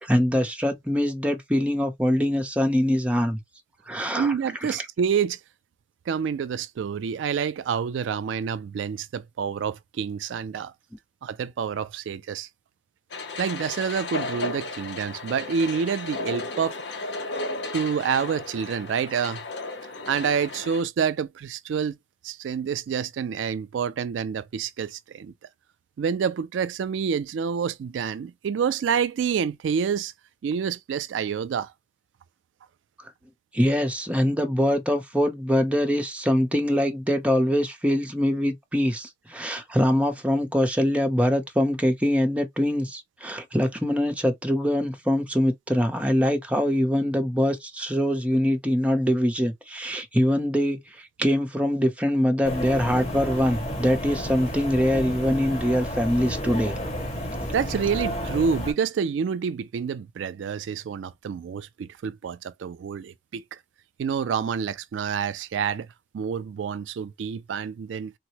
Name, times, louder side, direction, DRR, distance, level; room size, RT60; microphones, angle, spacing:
voice 1, 0.0-3.4 3.9-4.3 33.5-56.7, equal, 5° right, 0.6 m, -23 dB
voice 2, 4.2-5.4 6.1-10.7 11.2-12.5 13.4-17.1 17.7-19.4 20.1-22.0 22.2-25.3 26.0-30.1 30.4-31.7 57.5-63.6 64.0-65.9 66.1-68.1, right 6 dB, 85° right, 0.3 m, -28 dB
sound 1, 13.1-20.8, left 3 dB, 65° left, 0.7 m, -34 dB
sound 2, 52.4-58.7, equal, 40° left, 1.5 m, -31 dB
3.9 x 2.0 x 2.8 m
head